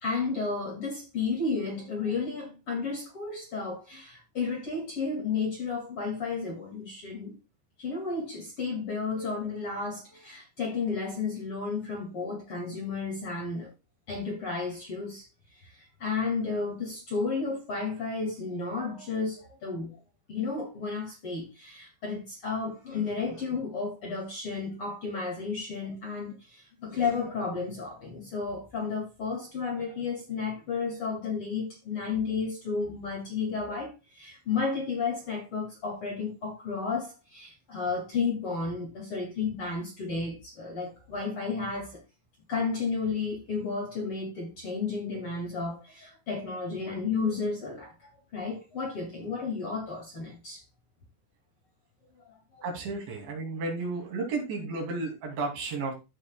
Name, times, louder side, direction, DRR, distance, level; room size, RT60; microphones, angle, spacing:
voice 1, 0.0-7.3 7.8-13.7 14.1-15.3 15.6-20.0 20.3-42.0 42.5-50.6 52.5-52.7, left 4 dB, 40° left, 2.4 m, -32 dB
voice 2, 52.6-55.9, right 3 dB, 75° right, 4.9 m, -33 dB
14.0 x 6.5 x 2.3 m
omnidirectional pair, 5.2 m